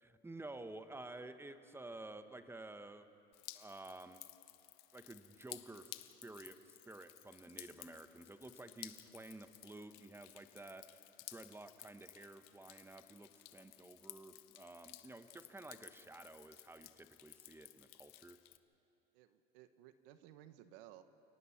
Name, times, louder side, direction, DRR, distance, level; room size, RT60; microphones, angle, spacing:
voice 1, 0.0-3.1 3.5-4.2 4.9-18.4, right 2 dB, 10° right, 9 dB, 1.0 m, -52 dB
Drip, 3.3-18.6, left 18 dB, 80° left, 0.9 m, -56 dB
voice 2, 19.1-21.0, right 12 dB, 80° right, 11 dB, 1.1 m, -58 dB
29.5 x 18.5 x 5.8 m, 2.7 s
supercardioid pair, 115°, 29 cm